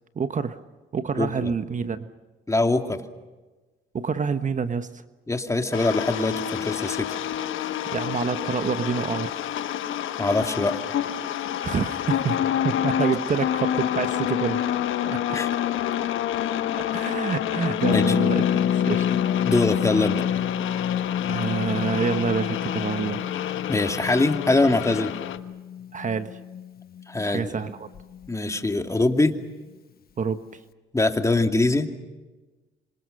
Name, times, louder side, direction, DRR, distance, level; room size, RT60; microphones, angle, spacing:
voice 1, 0.1-0.6 0.9-2.1 3.9-5.0 7.9-9.4 11.6-14.6 15.0-15.4 16.7-18.5 18.8-19.0 21.3-23.2 25.9-26.4 27.2-27.9 30.2-30.6, right 5 dB, 40° right, 10 dB, 1.2 m, -27 dB
voice 2, 1.2-1.5 2.5-3.0 5.3-7.1 10.2-10.8 15.3-15.5 17.9-18.1 19.5-20.2 23.7-25.1 27.1-27.5 28.3-29.4 30.9-31.9, left 2 dB, 15° left, 6 dB, 2.6 m, -23 dB
sound 1, 5.7-25.4, left 10 dB, 80° left, 1.4 m, -28 dB
Harp, 17.8-27.4 27.7-27.8 27.9-28.3, left 9 dB, 50° left, 1.0 m, -27 dB
27.0 x 26.0 x 6.6 m, 1.2 s
cardioid pair, 90°, 20 cm